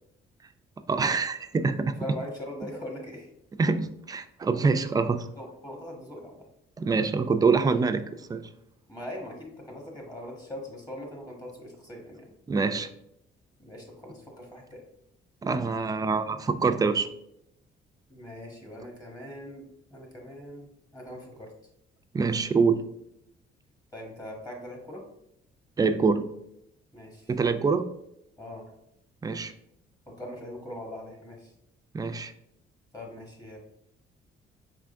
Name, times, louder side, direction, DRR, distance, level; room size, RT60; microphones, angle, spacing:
voice 1, 0.9-2.0 3.6-5.3 6.8-8.4 12.5-12.9 15.4-17.1 22.1-22.8 25.8-26.3 27.3-27.9 29.2-29.5 31.9-32.3, right 4 dB, 20° right, 9 dB, 0.3 m, -25 dB
voice 2, 2.0-3.3 5.4-6.4 8.9-12.3 13.6-14.8 18.1-19.6 19.9-21.5 23.9-25.0 26.9-27.3 28.4-28.7 30.1-31.5 32.9-33.6, left 1 dB, 20° left, 0 dB, 1.3 m, -41 dB
5.0 x 3.5 x 2.5 m, 0.80 s
cardioid pair, 90°, 20 cm